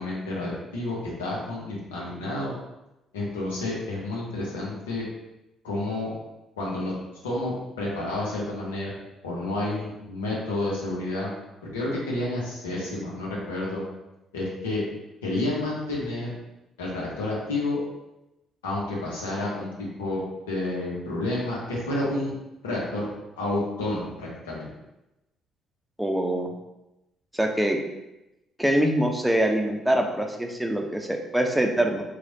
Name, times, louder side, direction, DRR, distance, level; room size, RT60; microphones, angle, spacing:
voice 1, 0.0-2.6 3.1-5.1 5.6-6.1 6.6-6.9 7.2-8.9 9.2-11.3 11.6-13.8 14.3-14.8 15.2-16.3 16.8-17.8 18.6-22.3 22.6-23.1 23.4-24.7, left 2 dB, 85° left, -4 dB, 0.9 m, -30 dB
voice 2, 26.0-26.5 27.3-27.8 28.6-32.0, right 1 dB, 5° right, 3 dB, 0.6 m, -24 dB
3.1 x 2.4 x 4.0 m, 0.94 s
hypercardioid pair, 50°, 0 cm